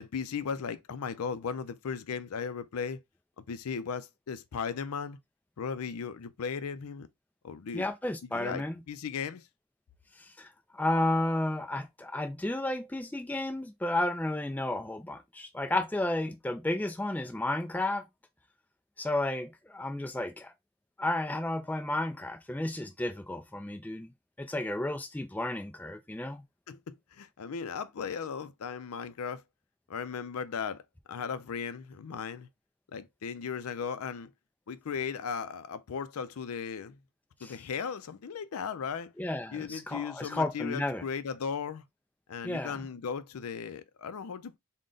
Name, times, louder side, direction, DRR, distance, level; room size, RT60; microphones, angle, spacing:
voice 1, 0.0-3.0 3.4-5.2 5.6-7.1 7.4-7.8 8.3-9.5 26.7-29.4 29.9-30.8 31.1-32.5 32.9-34.3 34.7-37.0 37.4-39.1 39.5-41.8 42.3-44.6, left 6 dB, 75° left, 0.4 m, -36 dB
voice 2, 7.7-8.8 10.4-18.0 19.0-20.5 21.0-24.1 24.4-26.4 37.4-37.5 39.2-41.0 42.4-42.8, left 1 dB, 5° left, 0.3 m, -32 dB
3.8 x 2.2 x 3.7 m
head